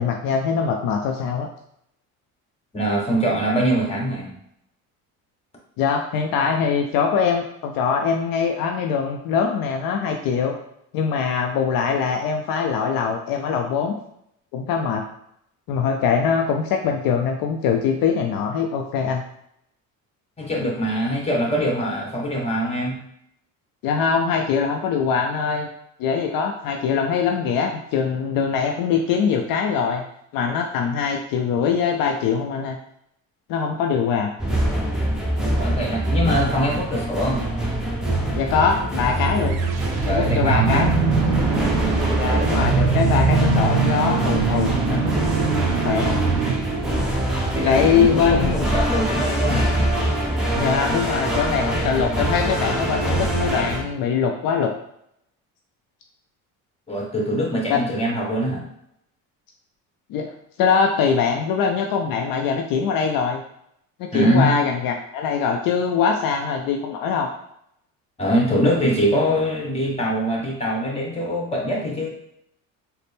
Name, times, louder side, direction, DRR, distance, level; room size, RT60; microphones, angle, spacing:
voice 1, 0.0-1.5 5.8-10.6 10.9-13.9 14.5-15.0 15.7-19.2 23.8-25.7 26.0-30.0 30.3-32.8 33.5-34.3 38.4-39.6 40.1-40.9 42.2-45.2 45.8-46.2 47.6-48.6 50.6-54.7 57.7-57.8 60.1-60.3 60.6-63.4 64.0-67.3, left 6 dB, 65° left, 3 dB, 0.5 m, -22 dB
voice 2, 2.7-4.4 20.4-23.0 35.6-37.5 40.0-40.9 47.5-49.9 56.9-58.6 64.1-64.5 68.2-72.1, equal, 15° left, -1 dB, 1.3 m, -23 dB
sound 1, 34.4-53.8, right 1 dB, ahead, 0.8 m, -24 dB
sound 2, 39.4-47.5, right 6 dB, 85° right, 0.6 m, -23 dB
4.0 x 2.1 x 3.4 m, 0.74 s
supercardioid pair, 85°, 37 cm